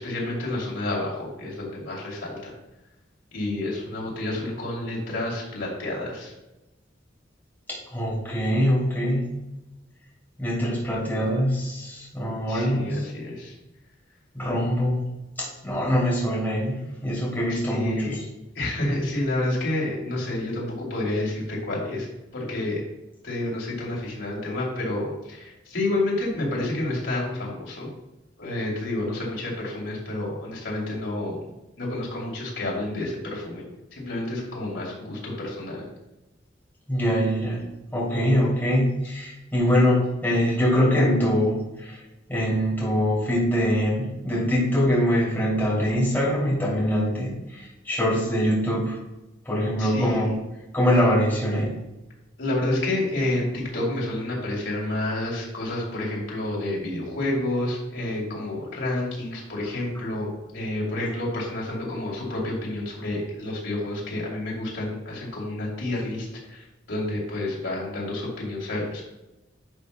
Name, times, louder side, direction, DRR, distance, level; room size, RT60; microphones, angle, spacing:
voice 1, 0.0-2.6 3.3-6.3 12.5-13.5 17.5-18.2 18.5-22.1 22.3-22.8 23.2-27.9 28.4-31.5 31.8-33.6 33.9-35.9 49.8-50.3 52.4-69.0, left 1 dB, 80° left, -4 dB, 2.7 m, -29 dB
voice 2, 7.7-9.3 10.4-12.9 14.3-15.0 15.4-18.1 36.9-37.6 37.9-41.9 42.3-47.3 47.8-49.0 49.5-50.3 50.7-51.7, equal, 10° left, -7 dB, 2.7 m, -23 dB
11.0 x 6.5 x 2.2 m, 0.98 s
head